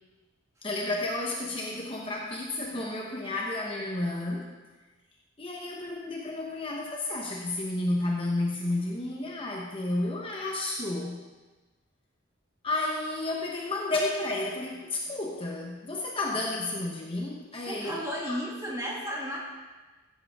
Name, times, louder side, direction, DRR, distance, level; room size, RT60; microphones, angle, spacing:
voice 1, 0.6-4.5 5.4-11.2 12.6-18.4, left 2 dB, 25° left, -2 dB, 1.1 m, -31 dB
voice 2, 17.7-19.4, equal, 15° right, -3 dB, 2.0 m, -33 dB
15.5 x 7.8 x 3.6 m, 1.2 s
head